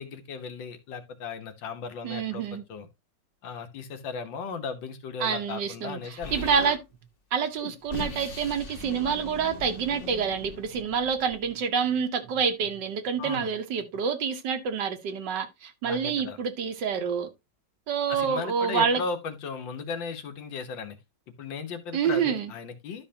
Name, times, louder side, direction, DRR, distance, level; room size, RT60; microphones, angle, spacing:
voice 1, 0.0-2.9 3.4-6.4 13.2-13.5 15.8-16.4 18.1-21.0 21.4-23.0, left 5 dB, 85° left, 1.9 m, -36 dB
voice 2, 2.0-2.6 5.2-6.8 7.3-17.3 17.9-19.0 21.9-22.5, right 6 dB, 70° right, 1.7 m, -27 dB
Explosion, 6.2-6.8 7.6-11.4, left 3 dB, 35° left, 1.3 m, -39 dB
12.0 x 5.5 x 2.8 m
omnidirectional pair, 2.0 m